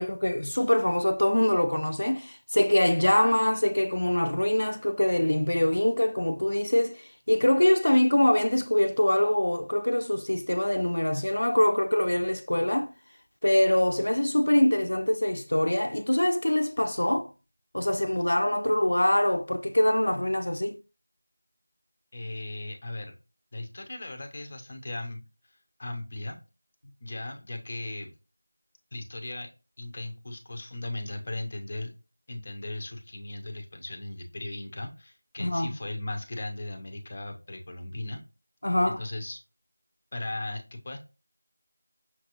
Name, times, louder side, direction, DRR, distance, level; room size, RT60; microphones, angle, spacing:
voice 1, 0.0-12.9 13.4-17.3 17.7-20.8 35.4-35.7 38.6-39.0, left 1 dB, 70° left, 0.5 m, -24 dB
voice 2, 22.1-23.2 23.5-25.2 25.5-26.4 27.0-28.1 28.9-29.5 29.8-31.9 32.3-38.2 38.9-39.4 40.1-41.0, left 2 dB, 25° left, 0.6 m, -37 dB
5.8 x 2.5 x 3.0 m
figure-of-eight pair, 175°, 0 cm